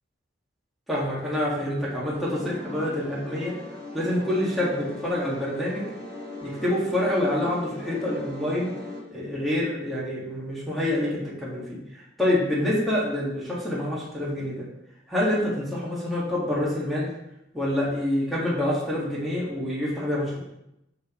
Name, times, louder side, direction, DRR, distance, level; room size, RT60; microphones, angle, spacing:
voice 1, 0.9-3.6 3.9-5.8 6.4-8.7 9.1-14.6 15.1-17.1 17.5-20.4, left 1 dB, ahead, -7 dB, 1.8 m, -27 dB
sound 1, 2.1-9.0, left 1 dB, 30° left, 2.2 m, -39 dB
7.2 x 6.1 x 3.1 m, 0.83 s
head